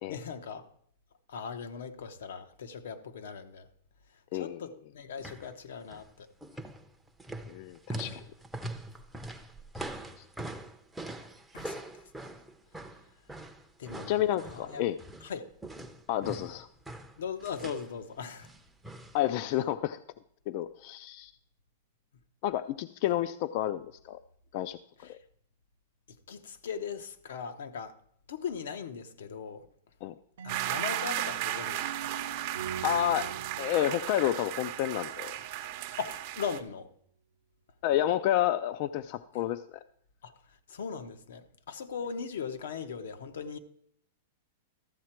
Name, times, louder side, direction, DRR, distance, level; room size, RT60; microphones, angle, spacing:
voice 1, 0.1-0.7 1.3-3.7 4.3-6.3 7.9-8.2 11.5-12.3 13.8-14.8 15.2-15.5 17.2-18.5 25.0-25.2 26.1-28.0 28.3-29.7 30.4-32.1 36.0-36.9 40.2-43.6, left 6 dB, 80° left, 0.9 m, -39 dB
voice 2, 4.3-4.6 7.5-8.2 10.2-10.3 14.1-15.0 16.1-16.7 19.1-20.0 20.5-21.3 22.4-24.2 24.5-25.2 30.0-30.1 32.8-33.3 33.6-35.3 37.8-39.6, left 12 dB, 45° left, 0.3 m, -30 dB
sound 1, 5.2-5.5 5.8-6.1 6.4-15.3 15.6-17.9 18.4-19.2 19.5-19.6, right 1 dB, 5° right, 0.6 m, -42 dB
sound 2, 30.4-35.3, right 7 dB, 75° right, 0.8 m, -44 dB
sound 3, 30.5-36.6, right 13 dB, 45° right, 0.7 m, -35 dB
13.0 x 7.5 x 4.4 m
supercardioid pair, 160°, 0 cm